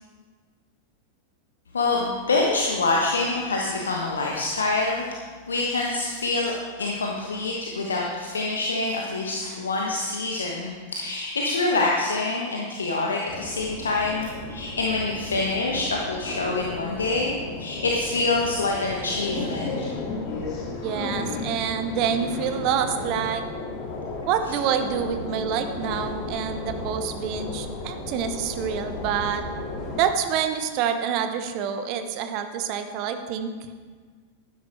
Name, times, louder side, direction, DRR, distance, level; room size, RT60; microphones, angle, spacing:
voice 1, 1.7-5.1 5.5-6.5 6.8-17.3 17.6-19.7, left 3 dB, 70° left, -1 dB, 1.2 m, -26 dB
sound 1, 13.3-30.0, left 3 dB, 40° left, 2.4 m, -34 dB
voice 2, 20.8-23.4 24.3-29.4 30.0-33.5, right 8 dB, 40° right, 8 dB, 1.0 m, -27 dB
12.5 x 9.9 x 4.5 m, 1.5 s
figure-of-eight pair, 90°, 0 cm